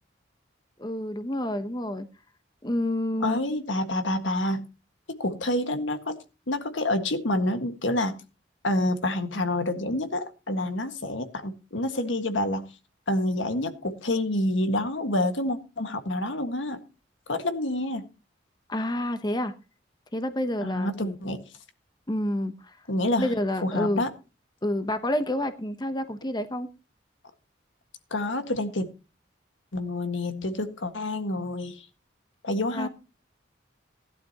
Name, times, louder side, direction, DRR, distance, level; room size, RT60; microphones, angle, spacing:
voice 1, 0.8-2.1 2.6-3.4 18.7-19.5 20.1-21.2 22.1-22.7 23.2-24.1 24.6-26.7 32.7-32.9, left 1 dB, 20° left, 10 dB, 0.9 m, -28 dB
voice 2, 3.2-4.6 5.1-6.2 6.5-8.2 8.6-12.7 13.1-16.8 17.3-18.1 20.6-21.4 22.9-23.3 23.6-24.1 28.1-28.9 29.7-31.8 32.4-32.9, left 1 dB, 90° left, 8 dB, 1.7 m, -28 dB
16.5 x 11.5 x 2.9 m, 0.31 s
head